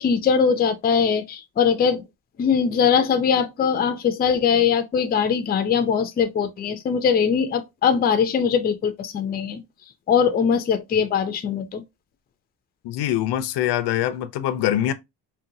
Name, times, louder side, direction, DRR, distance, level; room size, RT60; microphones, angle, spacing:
voice 1, 0.0-2.0 2.4-9.6 10.1-11.8, left 7 dB, 25° left, 0.4 m, -21 dB
voice 2, 12.8-14.9, left 12 dB, 85° left, 0.5 m, -23 dB
4.0 x 2.2 x 2.6 m
cardioid pair, 155°, 40 cm